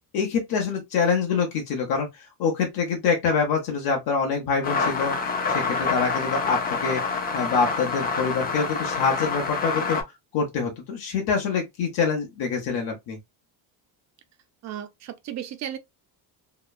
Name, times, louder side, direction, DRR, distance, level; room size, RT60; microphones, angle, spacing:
voice 1, 0.1-7.0 7.3-10.0 10.3-13.2, left 5 dB, 55° left, 0.8 m, -25 dB
sound 1, 4.6-10.0, left 4 dB, 20° left, 0.4 m, -27 dB
voice 2, 14.6-15.8, right 10 dB, 40° right, 0.4 m, -34 dB
2.9 x 2.2 x 2.3 m
cardioid pair, 155°, 44 cm